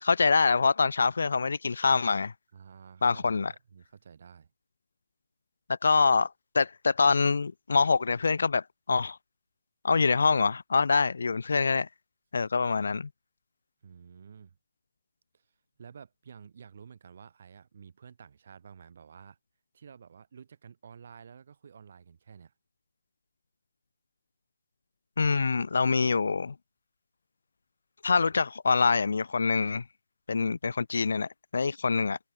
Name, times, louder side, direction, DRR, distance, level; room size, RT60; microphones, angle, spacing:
voice 1, 0.0-2.3 3.0-3.5 5.8-6.3 6.5-9.2 9.8-11.9 12.3-13.1 25.2-26.5 28.0-29.8 30.3-32.2, left 4 dB, 60° left, 0.5 m, -25 dB
voice 2, 2.5-4.5 13.8-14.6 15.3-15.4 15.8-19.4 19.7-22.5, right 7 dB, 40° right, 4.3 m, -51 dB
hypercardioid pair, 175°, 0 cm